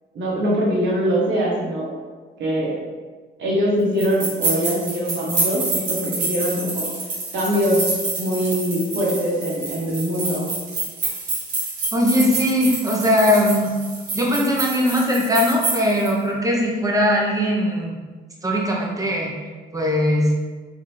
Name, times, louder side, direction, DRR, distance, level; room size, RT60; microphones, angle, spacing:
voice 1, 0.1-2.0 2.4-2.7 3.4-6.9 7.3-7.8 8.2-10.6, equal, 70° right, -5 dB, 1.1 m, -22 dB
sound 1, 4.0-16.1, right 3 dB, 85° right, 1.4 m, -27 dB
voice 2, 11.9-13.7 14.1-18.0 18.4-19.3 19.7-20.3, left 1 dB, 15° right, -2 dB, 0.8 m, -20 dB
3.8 x 2.6 x 3.2 m, 1.4 s
cardioid pair, 90°, 20 cm